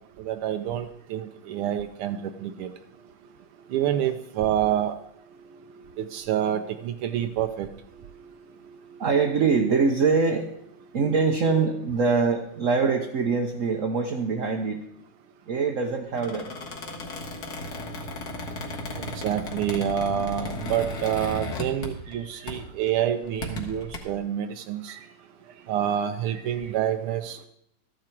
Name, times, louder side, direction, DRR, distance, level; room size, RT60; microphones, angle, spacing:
voice 1, 0.2-2.7 3.7-4.9 6.0-7.7 19.2-25.0 25.7-27.5, right 10 dB, 80° right, 1.5 m, -27 dB
voice 2, 3.2-3.7 5.4-6.0 8.0-14.8 15.5-16.5 22.2-22.4, right 4 dB, 60° right, 0.8 m, -25 dB
Squeak, 16.1-22.2 22.5-22.7 23.2-24.0, left 1 dB, 50° left, 1.9 m, -35 dB
13.5 x 9.8 x 4.5 m
omnidirectional pair, 2.4 m